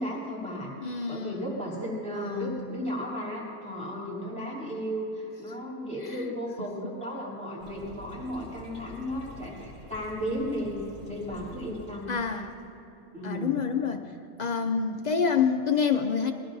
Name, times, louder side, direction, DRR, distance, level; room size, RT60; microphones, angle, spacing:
voice 1, 0.0-10.8 11.0-12.1 13.1-13.6, equal, 5° left, -7 dB, 3.0 m, -34 dB
voice 2, 0.8-1.4 2.1-2.8 6.0-6.3 12.1-12.5 13.2-14.1 14.4-16.3, left 6 dB, 60° left, 5 dB, 0.4 m, -28 dB
sound 1, 7.6-12.7, left 1 dB, 30° right, 3.0 m, -47 dB
21.5 x 15.5 x 2.7 m, 3.0 s
omnidirectional pair, 1.5 m